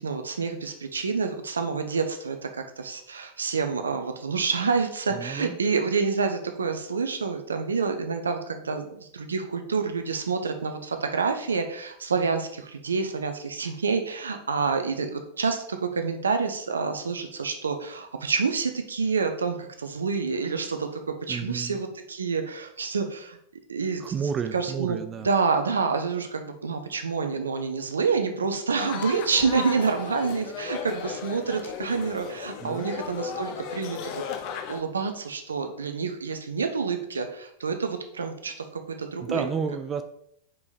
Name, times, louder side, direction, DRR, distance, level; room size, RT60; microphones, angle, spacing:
voice 1, 0.0-21.0 21.3-23.4 23.7-24.1 24.5-25.0 25.2-34.1 34.7-39.5, right 5 dB, 70° right, 6 dB, 0.7 m, -28 dB
voice 2, 5.1-5.6 21.3-21.8 24.0-25.3 32.6-32.9 39.2-40.0, right 6 dB, 25° right, 9 dB, 0.4 m, -31 dB
sound 1, 28.8-34.8, left 7 dB, 45° left, 0.7 m, -35 dB
4.9 x 4.8 x 4.0 m, 0.70 s
figure-of-eight pair, 90°, 0 cm